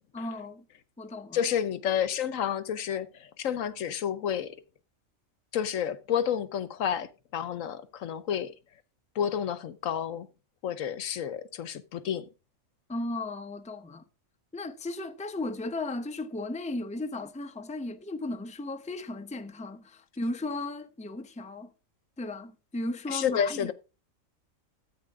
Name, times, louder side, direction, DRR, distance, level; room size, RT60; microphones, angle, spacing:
voice 1, 0.1-0.6 1.0-1.4 12.9-14.0 14.5-21.7 22.2-23.7, left 2 dB, 5° left, 0.7 m, -35 dB
voice 2, 1.3-4.6 5.5-8.5 9.1-10.3 10.6-12.3 23.1-23.7, left 9 dB, 75° left, 1.2 m, -30 dB
13.5 x 8.8 x 3.6 m
omnidirectional pair, 1.4 m